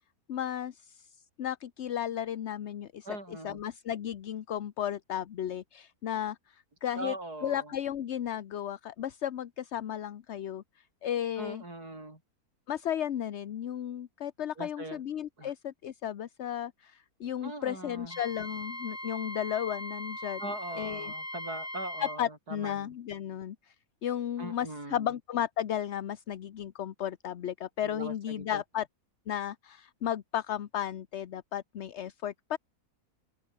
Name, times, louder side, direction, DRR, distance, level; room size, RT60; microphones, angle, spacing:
voice 1, 0.3-7.1 7.4-10.6 11.0-11.6 12.7-21.1 22.0-23.7 24.0-28.9 29.3-32.6, left 10 dB, 55° left, 0.9 m, -34 dB
voice 2, 3.0-3.6 7.0-7.7 11.4-12.2 14.6-15.0 15.4-15.5 17.4-18.2 20.4-22.9 24.4-25.2 27.8-28.6, right 2 dB, 75° right, 8.0 m, -41 dB
Wind instrument woodwind instrument, 18.1-22.2, left 1 dB, 10° left, 2.7 m, -40 dB
open air
omnidirectional pair, 1.6 m